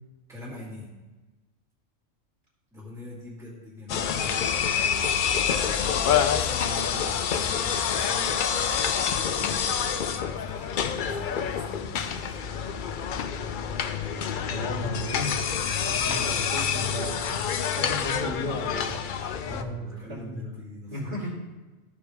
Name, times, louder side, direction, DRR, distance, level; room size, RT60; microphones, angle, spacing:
voice 1, 0.3-0.9 2.7-4.9 5.6-12.4 19.4-21.3, left 2 dB, ahead, -7 dB, 2.2 m, -43 dB
sound 1, 3.9-19.6, left 7 dB, 60° left, 0.5 m, -27 dB
voice 2, 14.4-15.4 15.8-17.4 17.7-19.2 19.5-20.4 20.9-21.3, equal, 40° right, -7 dB, 2.8 m, -35 dB
14.0 x 4.9 x 3.5 m, 1.2 s
omnidirectional pair, 1.3 m